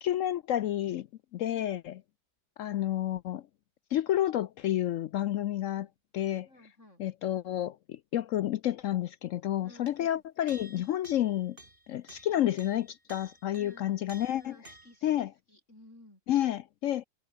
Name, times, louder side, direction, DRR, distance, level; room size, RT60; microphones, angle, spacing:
voice 1, 0.0-1.1 1.3-2.0 2.6-3.4 3.9-5.9 6.1-6.5 7.0-11.6 11.9-14.6 15.0-15.3 16.3-17.1, left 12 dB, 75° left, 0.7 m, -30 dB
voice 2, 6.5-7.0 9.6-10.2 13.5-14.0 14.4-16.2, left 1 dB, 40° left, 7.4 m, -56 dB
sound 1, 9.9-10.0 10.5-15.0, right 1 dB, 30° right, 5.5 m, -53 dB
omnidirectional pair, 1.9 m